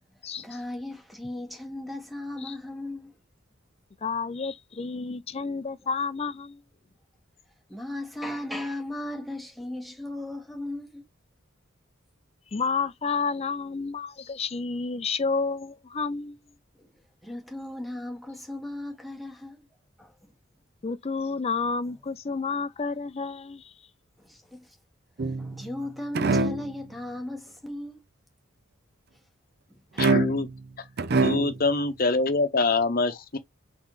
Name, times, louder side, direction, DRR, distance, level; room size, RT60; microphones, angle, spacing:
voice 1, 0.1-3.1 7.7-11.0 16.7-16.9 17.2-19.7 20.0-20.3 24.2-24.8 25.2-28.0 29.7-30.1, left 1 dB, ahead, 1.4 m, -37 dB
voice 2, 4.0-6.6 12.5-16.4 20.8-23.7, left 4 dB, 30° left, 0.5 m, -30 dB
sound 1, 25.2-25.7 26.1-26.7 30.0-30.6 31.0-31.6, right 3 dB, 55° right, 0.5 m, -24 dB
voice 3, 30.0-30.5 31.2-33.4, left 3 dB, 45° left, 0.9 m, -25 dB
4.0 x 3.9 x 3.1 m
head